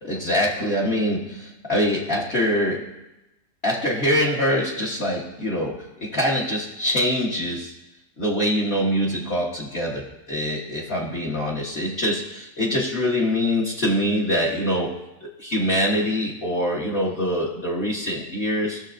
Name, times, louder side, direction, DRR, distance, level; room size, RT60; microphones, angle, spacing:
voice 1, 0.0-2.9 3.6-7.7 8.2-14.9 15.2-18.8, equal, 40° left, -3 dB, 1.3 m, -24 dB
17.0 x 6.5 x 2.5 m, 0.95 s
omnidirectional pair, 1.8 m